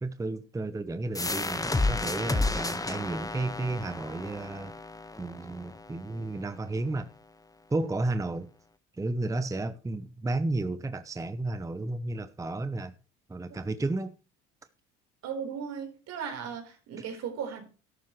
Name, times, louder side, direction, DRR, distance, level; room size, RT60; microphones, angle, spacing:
voice 1, 0.0-4.7 5.2-7.1 7.7-8.5 8.9-12.9 13.3-14.2, right 2 dB, 10° right, 0.8 m, -32 dB
sound 1, 1.2-6.6, left 2 dB, 10° left, 1.3 m, -32 dB
voice 2, 15.2-17.7, right 7 dB, 60° right, 4.2 m, -36 dB
13.0 x 11.0 x 3.2 m
supercardioid pair, 80°, 29 cm